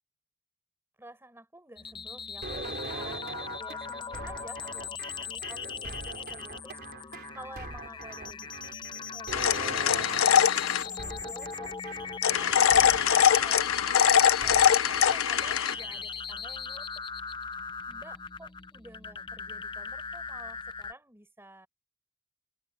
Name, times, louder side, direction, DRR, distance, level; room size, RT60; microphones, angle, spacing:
voice 1, 1.0-11.7 12.4-16.9 17.9-21.7, right 1 dB, 10° right, 5.2 m, -51 dB
sound 1, 1.8-20.9, left 6 dB, 20° left, 0.5 m, -39 dB
sound 2, 2.4-16.0, right 3 dB, 50° right, 4.2 m, -42 dB
sound 3, 9.3-10.9 12.2-15.7, left 9 dB, 70° left, 0.6 m, -22 dB
open air
head